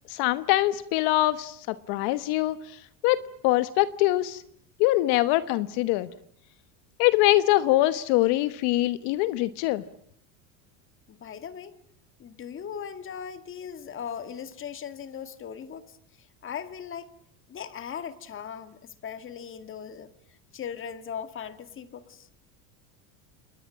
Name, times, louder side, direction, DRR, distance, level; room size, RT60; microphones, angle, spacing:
voice 1, 0.1-4.4 4.8-6.1 7.0-9.8, left 16 dB, 65° left, 13 dB, 1.3 m, -24 dB
voice 2, 11.1-11.8 12.2-16.0 16.4-17.1 17.5-20.1 20.5-22.3, left 8 dB, 30° left, 11 dB, 2.0 m, -38 dB
29.0 x 21.5 x 8.7 m, 0.65 s
cardioid pair, 145°, 43 cm